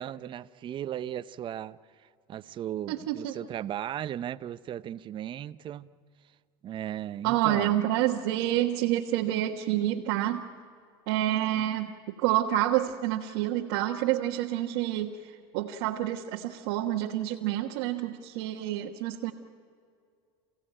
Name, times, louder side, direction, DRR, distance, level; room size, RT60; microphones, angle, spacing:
voice 1, 0.0-1.8 2.3-5.9 6.6-7.8, right 11 dB, 40° right, 15 dB, 0.7 m, -36 dB
voice 2, 2.9-3.3 7.2-10.5 11.1-19.3, right 13 dB, 75° right, 0 dB, 1.3 m, -28 dB
28.0 x 16.5 x 9.0 m, 2.3 s
supercardioid pair, 110°, 13 cm